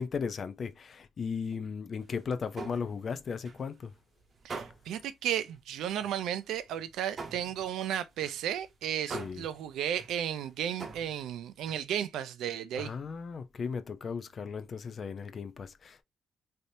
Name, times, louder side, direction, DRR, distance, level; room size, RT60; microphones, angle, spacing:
voice 1, 0.0-3.9 9.1-9.5 12.8-16.0, left 5 dB, 45° left, 0.5 m, -36 dB
sound 1, 2.0-3.9 4.3-5.1 5.4-5.6 6.0-11.8, right 4 dB, 45° right, 0.8 m, -45 dB
voice 2, 4.4-12.9, right 10 dB, 85° right, 0.4 m, -34 dB
3.3 x 2.7 x 2.6 m
cardioid pair, 90°, 0 cm